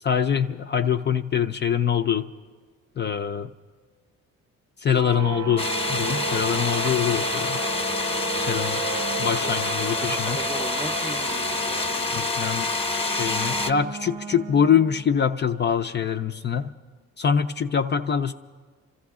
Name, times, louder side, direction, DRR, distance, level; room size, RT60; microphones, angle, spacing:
voice 1, 0.0-2.3 3.0-3.5 4.8-7.6 8.4-8.8 9.2-10.4 12.1-12.7 13.1-16.7 17.2-18.3, left 7 dB, 35° left, 6 dB, 0.4 m, -24 dB
sound 1, 4.9-15.2, right 8 dB, 70° right, 0.9 m, -35 dB
sound 2, 5.6-13.7, left 3 dB, 20° left, 0.9 m, -27 dB
voice 2, 10.0-12.7, right 1 dB, 10° right, 8 dB, 0.7 m, -39 dB
26.5 x 14.0 x 3.6 m, 1.5 s
cardioid pair, 90°, 30 cm